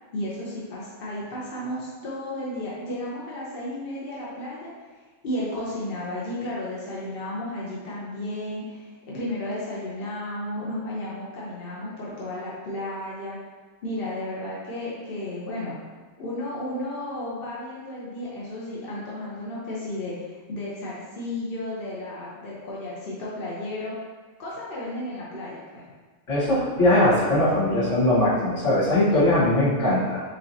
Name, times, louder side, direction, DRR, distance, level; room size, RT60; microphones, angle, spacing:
voice 1, 0.1-4.7 5.2-13.4 13.8-15.8 16.2-23.9 24.4-25.9, left 1 dB, 50° left, -6 dB, 1.0 m, -33 dB
voice 2, 26.3-30.2, left 1 dB, 70° left, -9 dB, 1.8 m, -20 dB
6.3 x 2.9 x 2.7 m, 1.4 s
omnidirectional pair, 1.3 m